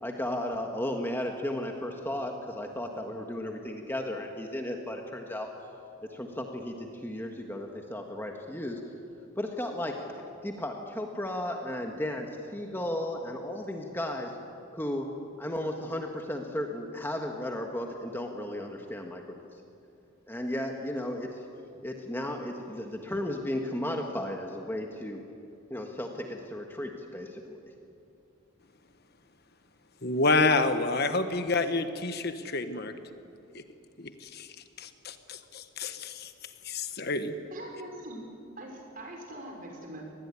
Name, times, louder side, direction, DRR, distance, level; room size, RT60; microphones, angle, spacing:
voice 1, 0.0-5.5 6.1-8.8 9.4-10.1 10.4-14.3 14.7-15.1 15.4-19.5 20.3-21.5 21.8-25.2 25.7-27.7, left 1 dB, 10° left, 2 dB, 1.6 m, -34 dB
voice 2, 30.0-32.9 33.5-33.6 34.0-37.3, left 3 dB, 50° left, 8 dB, 1.3 m, -29 dB
voice 3, 37.5-38.2 38.6-40.0, right 1 dB, 40° right, 1 dB, 5.7 m, -42 dB
25.5 x 19.5 x 9.8 m, 2.6 s
head